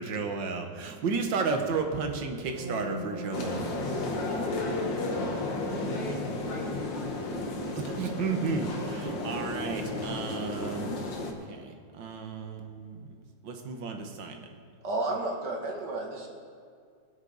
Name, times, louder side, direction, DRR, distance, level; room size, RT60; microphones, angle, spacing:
voice 1, 0.0-4.1 7.7-10.9 11.3-13.2 13.4-14.5, right 4 dB, 80° right, 4 dB, 1.8 m, -33 dB
sound 1, 2.3-10.7 11.0-11.4, equal, 30° right, 1.5 m, -45 dB
sound 2, 3.3-11.3, left 2 dB, 80° left, 1.9 m, -33 dB
voice 2, 4.1-7.0, left 1 dB, 55° left, -6 dB, 4.0 m, -41 dB
voice 3, 14.8-16.3, right 2 dB, 65° right, 0 dB, 2.4 m, -32 dB
21.5 x 8.3 x 4.0 m, 2.2 s
omnidirectional pair, 2.0 m